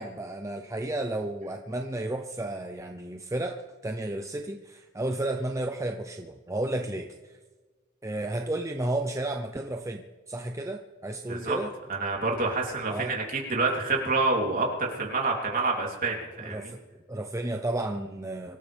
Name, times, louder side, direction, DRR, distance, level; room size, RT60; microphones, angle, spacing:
voice 1, 0.0-3.6 3.8-7.4 8.0-11.7 12.9-13.2 16.4-16.8 17.1-18.6, right 1 dB, 15° right, 4 dB, 0.7 m, -32 dB
voice 2, 11.9-16.7, right 3 dB, 45° right, -1 dB, 3.3 m, -28 dB
24.5 x 14.0 x 3.5 m, 1.3 s
head